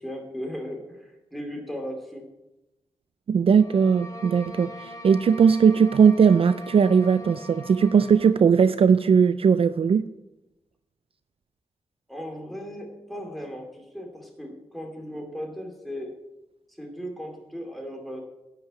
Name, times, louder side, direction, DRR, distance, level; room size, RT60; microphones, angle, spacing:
voice 1, 0.0-2.3 12.1-16.1 16.7-18.2, equal, ahead, 1 dB, 2.6 m, -37 dB
voice 2, 3.3-10.1, right 6 dB, 55° right, 13 dB, 0.3 m, -19 dB
sound 1, 3.6-8.4, equal, 35° left, 1.8 m, -42 dB
10.5 x 5.9 x 8.7 m, 0.94 s
wide cardioid pair, 120°, 12 cm